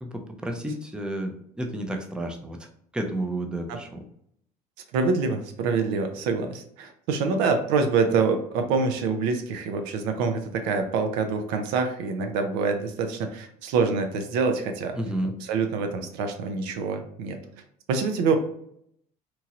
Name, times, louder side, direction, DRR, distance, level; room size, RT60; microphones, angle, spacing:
voice 1, 0.0-2.7 2.9-4.0 15.0-15.3, right 1 dB, 5° right, 3 dB, 0.5 m, -31 dB
voice 2, 4.9-15.0 15.4-17.4 17.9-18.4, right 4 dB, 65° right, 6 dB, 0.5 m, -26 dB
2.9 x 2.7 x 2.4 m, 0.70 s
hypercardioid pair, 65°, 20 cm